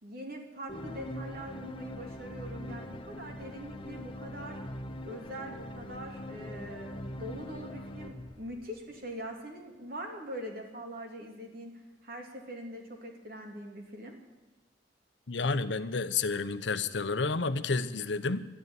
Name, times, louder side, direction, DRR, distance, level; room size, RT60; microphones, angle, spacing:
voice 1, 0.0-4.6 5.1-14.2, equal, 55° right, 2 dB, 2.8 m, -43 dB
sound 1, 0.7-9.1, left 1 dB, 30° left, 0.9 m, -42 dB
voice 2, 15.3-18.4, left 4 dB, 90° left, 12 dB, 0.8 m, -30 dB
12.5 x 11.0 x 9.4 m, 1.2 s
head